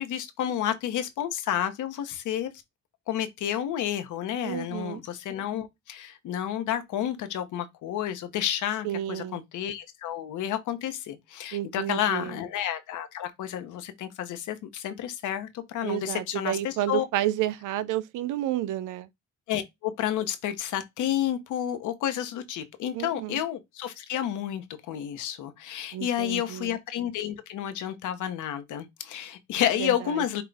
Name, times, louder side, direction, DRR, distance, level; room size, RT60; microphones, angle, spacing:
voice 1, 0.0-2.5 3.1-17.0 19.5-30.4, left 10 dB, 85° left, 0.9 m, -30 dB
voice 2, 4.4-5.0 8.8-9.4 11.5-12.4 15.8-19.1 22.9-23.4 25.9-26.8 29.7-30.1, right 13 dB, 85° right, 0.5 m, -31 dB
5.9 x 2.4 x 3.4 m
cardioid pair, 90°, 30 cm